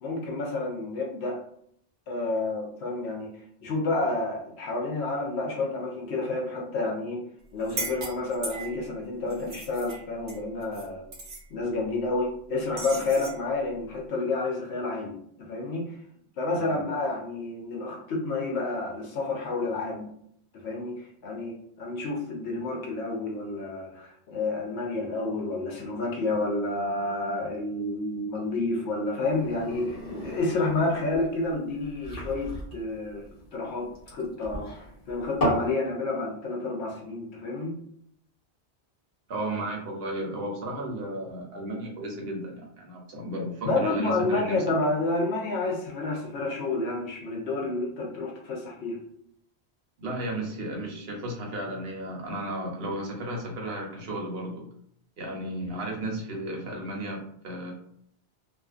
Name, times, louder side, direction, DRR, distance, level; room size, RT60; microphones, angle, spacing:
voice 1, 0.0-1.4 2.1-3.3 3.6-7.2 7.5-11.1 11.5-15.9 16.4-20.1 20.6-34.7 35.1-37.7 43.6-49.0, left 2 dB, 75° left, 0 dB, 0.9 m, -30 dB
sound 1, 7.6-8.9 9.3-10.9 11.1-11.4 12.8-13.4, right 3 dB, 90° right, 1.0 m, -37 dB
voice 2, 16.5-17.2 39.3-44.6 50.0-54.7 55.2-57.7, right 1 dB, 65° right, -1 dB, 1.0 m, -34 dB
sound 2, 29.2-35.7, equal, 35° left, 1.2 m, -34 dB
2.5 x 2.4 x 2.4 m, 0.68 s
omnidirectional pair, 1.1 m